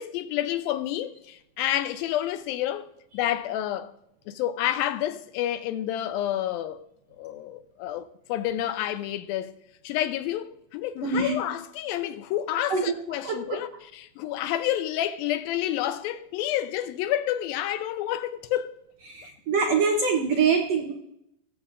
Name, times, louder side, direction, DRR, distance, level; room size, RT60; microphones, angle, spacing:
voice 1, 0.0-2.9 3.1-3.9 4.3-6.9 7.2-9.5 9.8-18.7, left 12 dB, 85° left, 2.4 m, -29 dB
voice 2, 11.0-11.4 12.7-13.0 13.2-13.6 19.1-20.9, right 5 dB, 80° right, 1.4 m, -24 dB
19.5 x 8.1 x 2.5 m
omnidirectional pair, 4.2 m